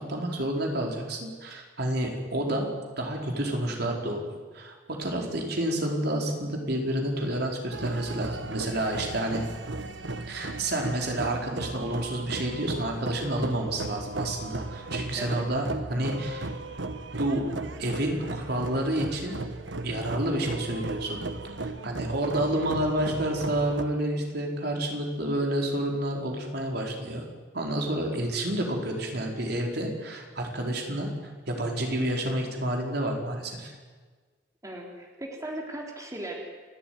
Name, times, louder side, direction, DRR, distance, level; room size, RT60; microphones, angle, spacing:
voice 1, 0.0-9.4 10.3-16.5 17.2-17.5 17.8-19.4 19.8-21.2 21.6-27.2 27.5-31.1 31.5-33.7, right 1 dB, 60° right, 1 dB, 4.6 m, -29 dB
sound 1, 7.7-23.8, right 2 dB, 85° right, 1.4 m, -36 dB
voice 2, 22.3-22.7 34.6-36.3, right 1 dB, 20° right, 0 dB, 3.4 m, -38 dB
29.5 x 13.5 x 9.5 m, 1.4 s
head